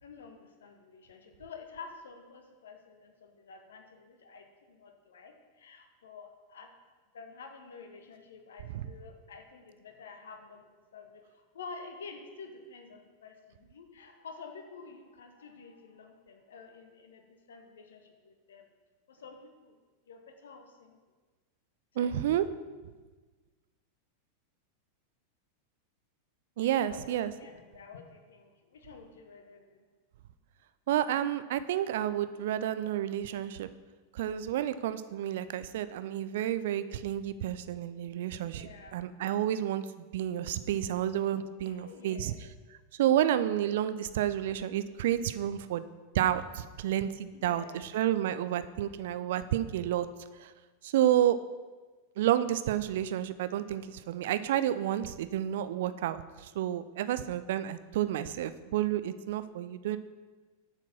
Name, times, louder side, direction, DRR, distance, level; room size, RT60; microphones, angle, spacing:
voice 1, 0.0-6.7 7.1-10.7 10.9-18.7 19.1-19.7 20.1-21.0 21.9-22.1 26.6-29.9 38.4-39.0 41.6-42.4 47.3-47.9, left 4 dB, 65° left, 5 dB, 1.0 m, -49 dB
voice 2, 22.0-22.5 26.6-27.3 30.9-33.7 34.1-39.8 40.1-42.3 43.0-45.8 46.1-50.1 50.4-50.5 50.8-51.4 52.2-60.0, right 11 dB, 55° right, 13 dB, 0.4 m, -30 dB
7.6 x 4.5 x 5.9 m, 1.4 s
figure-of-eight pair, 90°, 0 cm